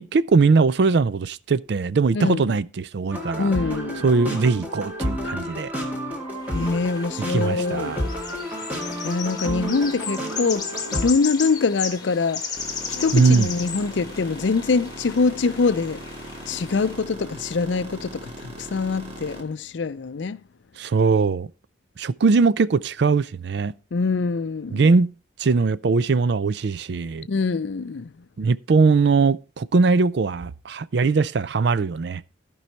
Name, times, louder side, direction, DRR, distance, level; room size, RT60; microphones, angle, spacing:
voice 1, 0.0-3.5 4.0-5.7 7.3-8.0 13.1-13.5 20.8-21.5 22.0-23.7 24.7-25.1 25.4-27.3 28.4-32.2, right 4 dB, 60° right, 0.4 m, -20 dB
voice 2, 2.1-2.5 3.4-4.1 6.5-8.0 9.0-12.5 12.9-16.0 16.5-20.4 23.9-24.8 27.3-28.2, left 4 dB, 70° left, 0.5 m, -24 dB
sound 1, 3.1-11.1, equal, 10° right, 2.1 m, -30 dB
sound 2, 6.4-17.0, left 5 dB, 20° left, 1.6 m, -35 dB
sound 3, 12.5-19.4, right 1 dB, 30° right, 1.9 m, -39 dB
14.5 x 5.5 x 4.5 m
head